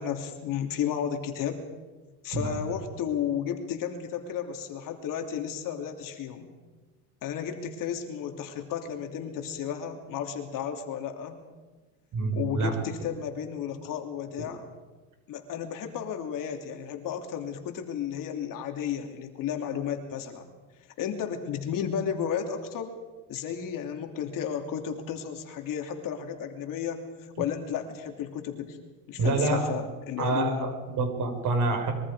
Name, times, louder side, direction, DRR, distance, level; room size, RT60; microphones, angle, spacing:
voice 1, 0.0-1.6 2.2-6.5 7.2-11.4 12.3-14.7 15.3-20.5 21.0-23.0 23.3-27.0 27.4-28.8 29.1-30.7, left 8 dB, 50° left, 5 dB, 2.9 m, -33 dB
voice 2, 12.1-12.7 14.4-14.5 29.2-29.7 30.2-31.9, right 3 dB, 45° right, 5 dB, 4.9 m, -27 dB
24.5 x 23.0 x 5.0 m, 1.3 s
cardioid pair, 130°, 41 cm